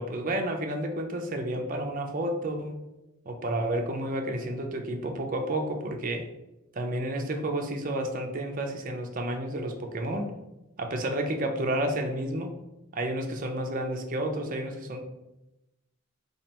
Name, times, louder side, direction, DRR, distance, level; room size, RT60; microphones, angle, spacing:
voice 1, 0.0-2.8 3.3-6.3 6.7-10.3 10.8-12.5 12.9-15.0, right 1 dB, 40° right, 3 dB, 0.5 m, -31 dB
4.0 x 3.2 x 2.9 m, 0.95 s
head